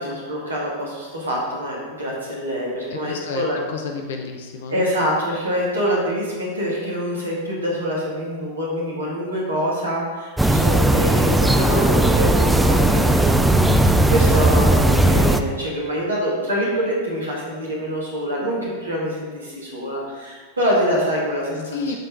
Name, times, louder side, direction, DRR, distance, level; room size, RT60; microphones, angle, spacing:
voice 1, 0.0-3.6 4.7-22.0, equal, 75° right, -4 dB, 2.0 m, -25 dB
voice 2, 2.9-4.9 21.6-22.0, left 5 dB, 55° left, 4 dB, 0.7 m, -30 dB
sound 1, 10.4-15.4, right 1 dB, 5° right, 0.5 m, -17 dB
13.0 x 4.5 x 3.8 m, 1.4 s
figure-of-eight pair, 90°, 0 cm